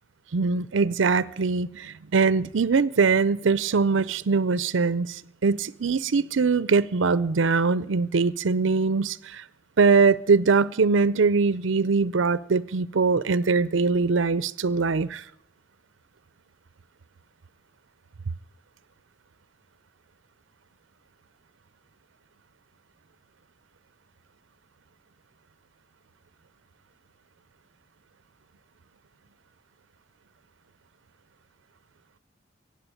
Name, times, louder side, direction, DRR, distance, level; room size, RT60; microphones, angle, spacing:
voice 1, 0.3-9.4 9.8-15.2, right 4 dB, 70° right, 0.6 m, -22 dB
16.0 x 8.9 x 9.8 m
head